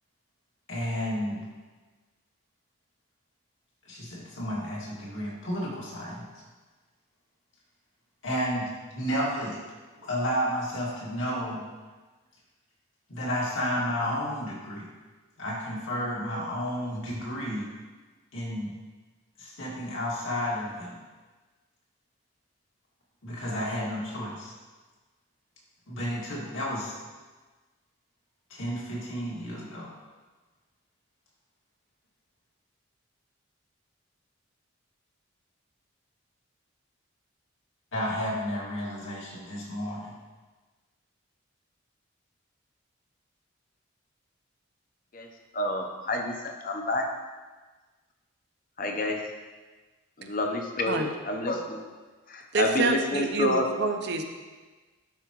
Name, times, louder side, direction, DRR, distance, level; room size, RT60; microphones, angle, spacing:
voice 1, 0.7-1.5 3.9-6.3 8.2-9.6 10.0-11.6 13.1-14.9 15.4-17.7 18.3-18.7 19.4-21.0 23.2-24.5 25.9-27.0 28.5-29.9 37.9-40.1, equal, 70° left, -5 dB, 2.1 m, -32 dB
voice 2, 45.5-47.1 48.8-49.2 50.2-51.8 52.3-53.7, left 2 dB, 40° left, 3 dB, 0.8 m, -29 dB
voice 3, 52.5-54.3, right 3 dB, 50° right, 5 dB, 0.6 m, -27 dB
11.5 x 4.8 x 3.1 m, 1.3 s
head